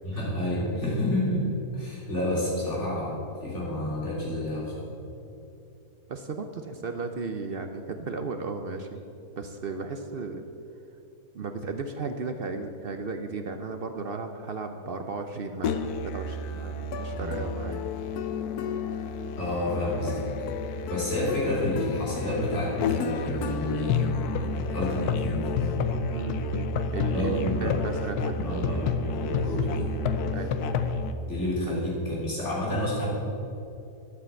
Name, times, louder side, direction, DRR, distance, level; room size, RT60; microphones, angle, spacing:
voice 1, 0.0-4.9 17.1-17.3 19.4-20.5 20.9-25.8 27.1-27.8 28.4-30.0 31.3-33.1, left 1 dB, 45° left, -6 dB, 3.9 m, -30 dB
voice 2, 6.1-9.0 9.4-10.4 11.3-17.8 26.1-28.8 30.3-30.6 31.7-31.8, right 4 dB, 60° right, 6 dB, 0.6 m, -35 dB
Musical instrument, 15.6-31.1, left 4 dB, 75° left, 1.2 m, -30 dB
10.0 x 8.3 x 7.5 m, 2.8 s
omnidirectional pair, 1.7 m